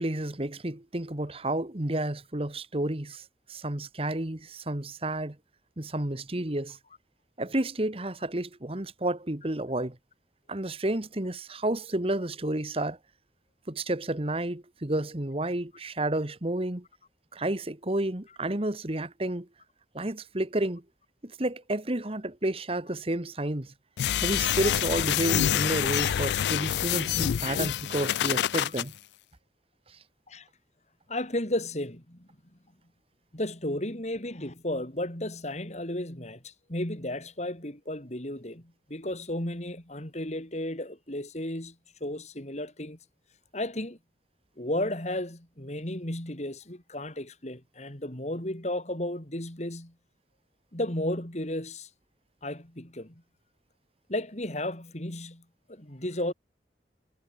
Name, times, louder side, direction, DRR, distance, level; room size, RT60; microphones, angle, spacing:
voice 1, 0.0-5.4 5.8-6.8 7.4-10.0 10.5-13.0 13.7-16.8 17.3-19.5 19.9-20.8 21.2-23.7 24.2-28.9 29.9-30.0, right 1 dB, 35° right, 1.5 m, -31 dB
sound 1, 24.0-28.8, left 10 dB, 75° left, 0.3 m, -27 dB
voice 2, 31.1-32.3 33.3-41.8 42.0-43.0 43.5-44.0 44.6-49.9 50.7-51.9 52.4-53.2 54.1-56.3, left 1 dB, 40° left, 3.8 m, -34 dB
head